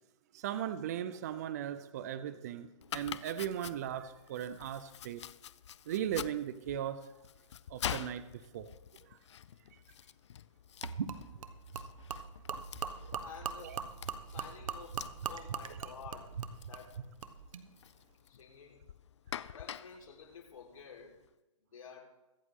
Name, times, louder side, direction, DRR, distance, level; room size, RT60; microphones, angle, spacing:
voice 1, 0.3-5.2 5.9-7.0 7.7-8.2 8.5-8.7 13.0-13.1 13.6-13.8, right 10 dB, 30° right, 13 dB, 0.6 m, -37 dB
Domestic sounds home sounds, 2.8-21.3, left 9 dB, 60° left, 0.5 m, -47 dB
Gurgling / Liquid, 10.8-17.6, right 6 dB, 80° right, 1.3 m, -41 dB
voice 2, 13.1-13.9 14.2-16.4 16.7-17.0 18.3-18.8 19.5-21.2 21.7-22.1, left 6 dB, 85° left, -1 dB, 4.3 m, -51 dB
23.0 x 8.1 x 3.7 m, 1.0 s
hypercardioid pair, 170°, 17 cm